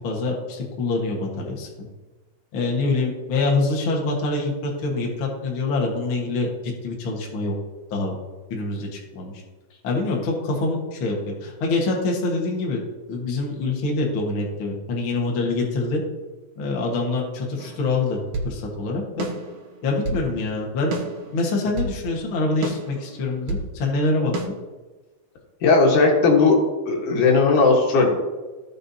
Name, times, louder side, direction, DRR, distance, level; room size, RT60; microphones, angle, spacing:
voice 1, 0.0-1.9 2.5-7.5 7.9-8.1 8.5-9.3 9.8-12.8 13.1-16.0 16.6-19.3 19.8-21.0 21.3-24.3, left 3 dB, 50° left, -1 dB, 1.9 m, -25 dB
sound 1, 17.6-18.6 19.2-20.3 20.9-22.0 22.6-23.7 24.3-24.5, right 3 dB, 75° right, 2.7 m, -30 dB
voice 2, 25.6-26.6 26.9-28.1, left 3 dB, 75° left, 0 dB, 2.9 m, -17 dB
16.0 x 5.5 x 2.8 m, 1.2 s
omnidirectional pair, 3.6 m